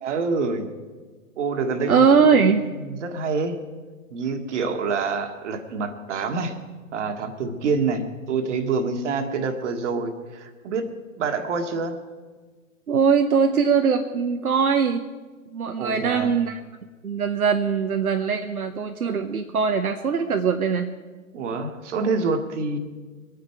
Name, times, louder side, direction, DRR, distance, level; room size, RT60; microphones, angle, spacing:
voice 1, 0.0-0.7 1.4-2.4 2.8-3.6 4.1-6.6 6.9-10.9 11.2-12.0 15.8-16.3 21.3-22.8, right 4 dB, 55° right, 7 dB, 1.8 m, -26 dB
voice 2, 1.9-2.7 12.9-15.0 15.5-16.6 17.0-20.9, right 6 dB, 80° right, 5 dB, 0.9 m, -21 dB
23.0 x 9.5 x 4.6 m, 1.4 s
figure-of-eight pair, 115°, 43 cm